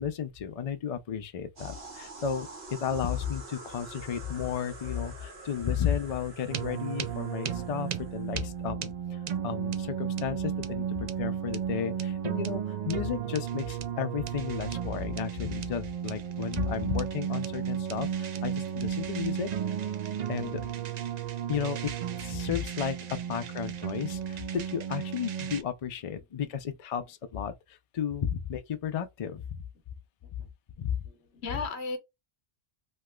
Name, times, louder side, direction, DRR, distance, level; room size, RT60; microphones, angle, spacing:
voice 1, 0.0-9.2 9.4-19.5 20.3-20.6 21.5-21.9 22.2-29.6 30.8-30.9, left 8 dB, 50° left, 0.4 m, -33 dB
sound 1, 1.6-8.5, right 3 dB, 75° right, 1.6 m, -47 dB
sound 2, 6.5-25.6, right 9 dB, 55° right, 0.5 m, -34 dB
voice 2, 30.8-32.0, left 4 dB, 85° left, 1.0 m, -39 dB
3.1 x 2.9 x 2.2 m
omnidirectional pair, 1.1 m